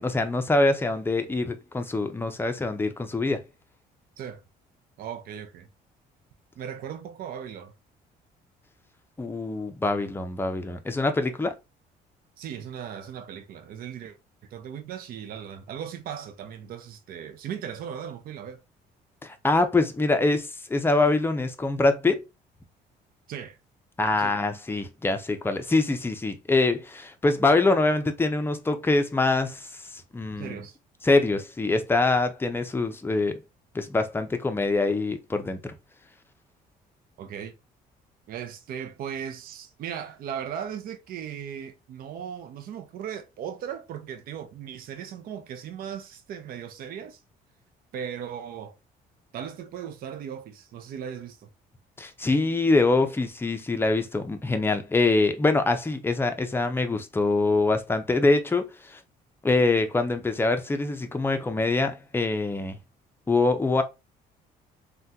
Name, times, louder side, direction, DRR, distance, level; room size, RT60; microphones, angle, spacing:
voice 1, 0.0-3.4 9.2-11.5 19.2-22.2 24.0-29.7 30.1-30.6 31.0-33.4 33.7-35.7 52.0-59.0 59.4-62.8 63.3-63.8, left 3 dB, 15° left, 0.5 m, -24 dB
voice 2, 5.0-5.7 6.6-7.7 12.4-14.2 14.4-18.6 23.3-23.6 24.2-24.4 30.4-30.8 37.2-37.5 38.3-47.2 47.9-48.7 49.3-51.5, right 8 dB, 60° right, 0.5 m, -37 dB
3.4 x 2.2 x 2.7 m
cardioid pair, 110°, 17 cm